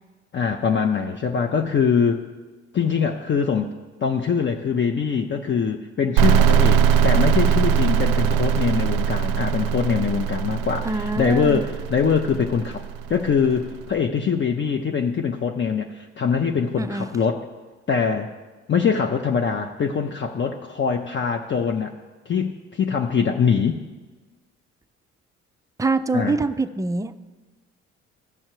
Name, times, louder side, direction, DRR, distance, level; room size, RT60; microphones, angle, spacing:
voice 1, 0.3-2.2 2.7-3.7 4.0-17.4 17.9-18.3 18.7-21.9 22.3-23.8 26.1-26.4, left 6 dB, 35° left, 4 dB, 0.6 m, -23 dB
sound 1, 6.2-13.7, right 8 dB, 70° right, 0.5 m, -21 dB
voice 2, 10.8-11.7 16.8-17.1 25.8-27.2, right 3 dB, 10° right, 11 dB, 0.4 m, -24 dB
14.0 x 6.3 x 3.0 m, 1.3 s
hypercardioid pair, 50°, 34 cm